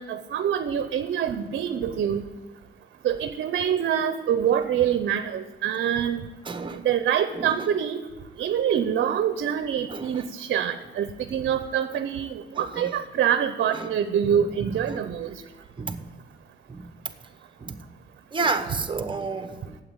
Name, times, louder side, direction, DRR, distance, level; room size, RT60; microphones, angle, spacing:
voice 1, 0.0-2.2 3.0-6.3 6.8-8.0 8.4-15.4, right 9 dB, 60° right, 10 dB, 0.7 m, -25 dB
voice 2, 6.4-6.8 7.3-7.7 9.9-10.3 12.5-12.9 13.7-13.9 14.2-15.0 15.8-16.1 16.7-16.9 17.6-17.9 18.3-19.8, right 4 dB, 25° right, 9 dB, 1.1 m, -31 dB
8.7 x 7.6 x 8.8 m, 1.2 s
cardioid pair, 90°, 20 cm